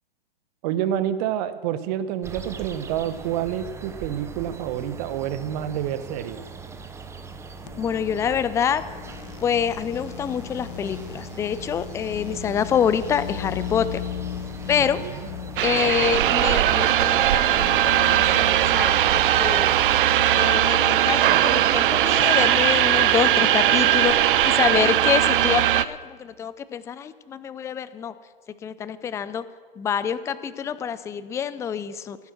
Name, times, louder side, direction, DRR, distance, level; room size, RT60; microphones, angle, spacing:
voice 1, 0.6-6.4 15.0-15.3, right 10 dB, 45° right, 12 dB, 1.2 m, -28 dB
sound 1, 2.2-20.0, right 4 dB, 10° right, 0.9 m, -41 dB
sound 2, 7.7-23.5, left 11 dB, 65° left, 0.7 m, -39 dB
voice 2, 7.8-8.8 9.4-14.0 14.7-15.0 15.6-19.7 20.4-24.2 24.4-28.1 28.6-29.4 29.8-32.2, left 8 dB, 10° left, 15 dB, 0.4 m, -26 dB
sound 3, 15.6-25.8, right 12 dB, 65° right, 0.6 m, -19 dB
15.0 x 11.0 x 6.3 m, 1.5 s
hypercardioid pair, 115°, 29 cm